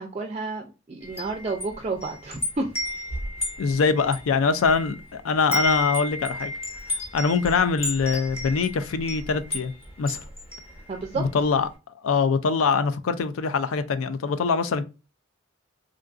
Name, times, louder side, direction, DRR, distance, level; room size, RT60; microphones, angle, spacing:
voice 1, 0.0-2.7 10.9-11.3, right 3 dB, 30° right, 0.4 m, -31 dB
Wind chime, 1.0-5.1 5.3-11.3, left 1 dB, 30° left, 1.1 m, -32 dB
voice 2, 3.6-6.5 7.1-9.7 10.0-10.2 11.2-11.7 12.0-14.8, left 5 dB, 80° left, 0.4 m, -23 dB
3.7 x 2.5 x 2.3 m
head